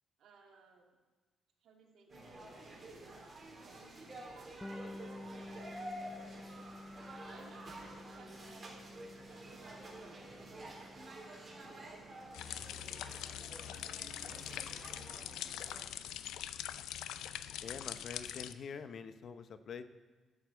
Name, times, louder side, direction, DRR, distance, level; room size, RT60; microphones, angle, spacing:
voice 1, 0.2-1.0 1.6-6.7 7.3-13.2 13.6-15.8, right 4 dB, 70° right, -1 dB, 2.5 m, -62 dB
sound 1, 2.1-15.8, right 1 dB, 30° right, 3.6 m, -50 dB
Bass guitar, 4.6-14.2, left 1 dB, 15° left, 0.5 m, -52 dB
sound 2, 12.3-18.5, left 11 dB, 85° left, 0.4 m, -43 dB
voice 2, 17.6-19.8, left 6 dB, 60° left, 11 dB, 0.7 m, -46 dB
12.0 x 6.6 x 8.0 m, 1.3 s
cardioid pair, 90°, 0 cm